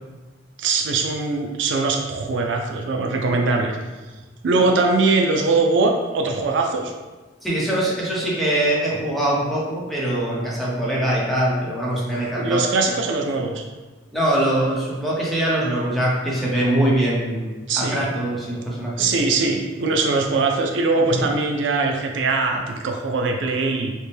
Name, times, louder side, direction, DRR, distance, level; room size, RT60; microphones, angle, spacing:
voice 1, 0.6-3.7 4.4-6.9 12.4-13.6 17.7-18.1 19.0-23.9, right 3 dB, 75° right, 2 dB, 0.4 m, -21 dB
voice 2, 7.4-12.6 14.1-19.1 21.1-21.3, right 1 dB, ahead, -6 dB, 0.8 m, -23 dB
4.2 x 2.2 x 3.3 m, 1.3 s
head